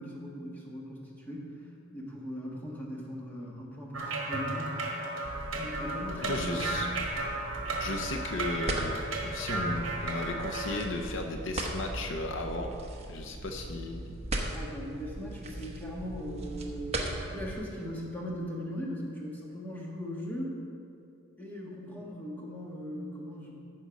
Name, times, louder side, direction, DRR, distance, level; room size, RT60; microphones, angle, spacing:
voice 1, 0.0-1.6 1.9-4.8 5.6-6.9 14.5-20.6 21.4-23.6, equal, 10° left, -3 dB, 1.4 m, -39 dB
sound 1, 3.9-10.8, right 2 dB, 65° right, 1.6 m, -34 dB
sound 2, 5.2-17.5, right 1 dB, 30° right, 0.9 m, -39 dB
voice 2, 6.2-6.9 7.8-9.0 9.2-12.7 13.1-14.2, left 2 dB, 60° left, 3 dB, 0.7 m, -35 dB
14.5 x 5.4 x 5.2 m, 2.5 s
head